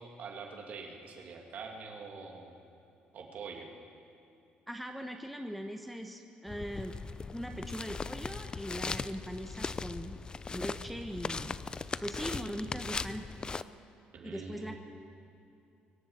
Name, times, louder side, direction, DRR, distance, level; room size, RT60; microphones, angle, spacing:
voice 1, 0.0-2.6 3.1-3.7 14.1-14.8, right 4 dB, 60° right, 1 dB, 2.5 m, -44 dB
voice 2, 4.7-6.9 7.3-10.2 10.5-11.5 12.0-13.2 14.2-14.7, equal, ahead, 3 dB, 1.1 m, -40 dB
sound 1, 6.5-13.6, left 4 dB, 25° left, 0.5 m, -39 dB
23.5 x 7.9 x 7.2 m, 2.7 s
cardioid pair, 85°, 3 cm